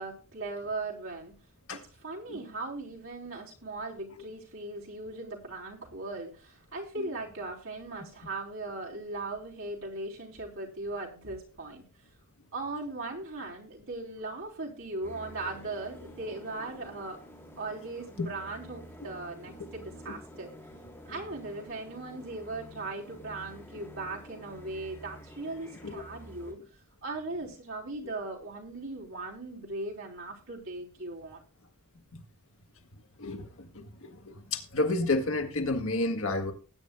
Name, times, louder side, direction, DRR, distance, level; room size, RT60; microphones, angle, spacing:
voice 1, 0.0-1.3 1.7-11.8 12.5-17.2 17.6-20.5 21.1-26.6 27.0-31.4, right 2 dB, 70° right, 3.5 m, -38 dB
sound 1, 15.0-26.5, equal, 15° left, 3.7 m, -49 dB
voice 2, 33.2-36.5, left 2 dB, 65° left, 1.7 m, -31 dB
19.5 x 9.2 x 2.3 m
head